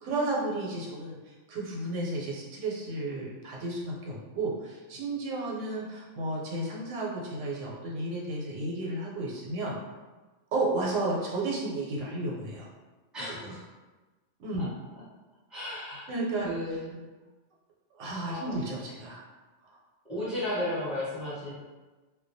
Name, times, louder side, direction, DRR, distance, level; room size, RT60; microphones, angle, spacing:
voice 1, 0.0-9.8 10.5-12.7 13.4-13.6 14.4-14.7 16.1-16.5 17.9-19.2 19.6-19.8, right 2 dB, 80° right, -3 dB, 0.9 m, -33 dB
voice 2, 13.1-13.6 14.6-14.7 15.5-16.0 16.4-17.0 18.2-18.5 20.0-21.5, left 1 dB, ahead, -10 dB, 0.7 m, -34 dB
2.2 x 2.2 x 2.5 m, 1.2 s
omnidirectional pair, 1.3 m